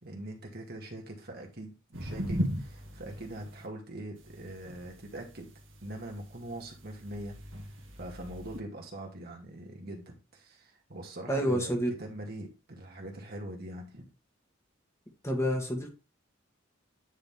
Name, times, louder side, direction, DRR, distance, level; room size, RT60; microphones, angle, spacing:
voice 1, 0.0-5.5 5.8-7.4 7.7-14.0, right 1 dB, 50° right, 1 dB, 2.1 m, -43 dB
sound 1, 1.9-3.6 4.2-8.6, equal, 65° right, 1.8 m, -38 dB
voice 2, 11.3-11.9 15.2-15.9, equal, 15° left, 1 dB, 1.5 m, -28 dB
9.6 x 3.9 x 3.6 m, 0.30 s
head